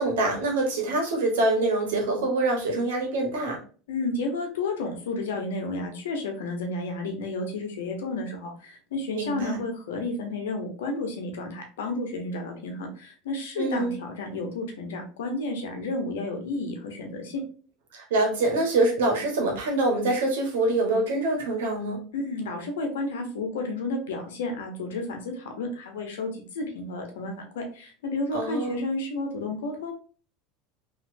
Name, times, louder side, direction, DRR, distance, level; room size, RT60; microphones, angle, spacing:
voice 1, 0.0-3.6 9.2-9.6 13.6-14.0 17.9-22.0 28.3-28.8, right 2 dB, 85° right, 1 dB, 1.1 m, -25 dB
voice 2, 3.9-17.4 22.1-29.9, left 2 dB, 90° left, 3 dB, 0.9 m, -31 dB
3.0 x 2.7 x 2.6 m, 0.39 s
supercardioid pair, 110°, 0 cm